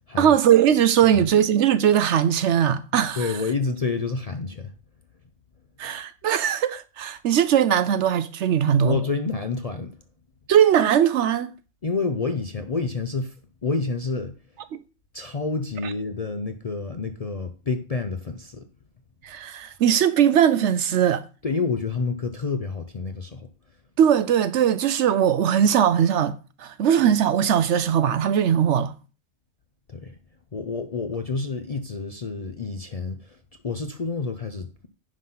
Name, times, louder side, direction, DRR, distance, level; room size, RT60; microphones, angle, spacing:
voice 1, 0.2-3.3 5.8-9.0 10.5-11.5 14.7-14.8 19.2-21.2 24.0-28.9, right 9 dB, 65° right, 0.8 m, -20 dB
voice 2, 3.2-4.7 8.8-9.9 11.8-13.4 13.6-14.3 15.1-18.7 21.4-23.5 29.9-30.2 30.5-34.7, left 4 dB, 45° left, 0.5 m, -28 dB
10.0 x 3.9 x 5.6 m
omnidirectional pair, 1.4 m